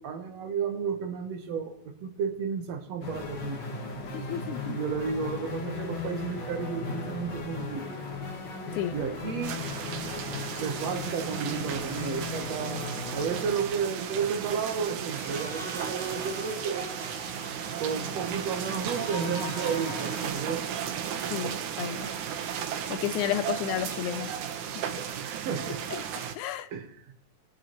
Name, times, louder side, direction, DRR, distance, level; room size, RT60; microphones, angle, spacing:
voice 1, 0.0-3.6 4.7-7.9 8.9-9.6 10.6-16.9 17.8-20.6 25.2-25.8 26.7-27.1, right 6 dB, 70° right, 6 dB, 2.1 m, -32 dB
sound 1, 3.0-20.3, left 4 dB, 45° left, 1.7 m, -38 dB
voice 2, 4.1-4.8 8.7-9.0 21.3-22.2 22.9-24.3 25.9-26.0 26.4-26.7, left 12 dB, 90° left, 12 dB, 2.1 m, -32 dB
sound 2, 9.4-26.4, right 8 dB, 85° right, 2.3 m, -35 dB
22.0 x 9.2 x 3.0 m, 0.70 s
omnidirectional pair, 3.4 m